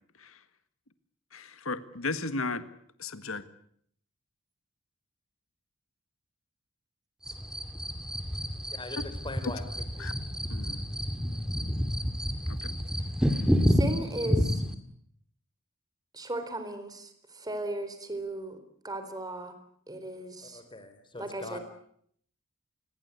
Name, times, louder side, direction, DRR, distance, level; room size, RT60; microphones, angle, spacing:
voice 1, 1.3-2.6 3.0-3.4 10.0-10.1 10.5-10.8 12.5-12.8, left 3 dB, 70° left, 12 dB, 1.8 m, -35 dB
sound 1, 7.2-14.7, equal, 5° right, 2.5 m, -29 dB
voice 2, 8.7-9.6 10.0-10.1 20.4-21.6, left 2 dB, 25° left, 8 dB, 3.8 m, -41 dB
voice 3, 13.7-14.6 16.1-18.6 18.8-19.5 19.9-20.6 21.2-21.6, right 1 dB, 20° right, 9 dB, 4.0 m, -36 dB
28.0 x 21.5 x 8.4 m, 0.66 s
head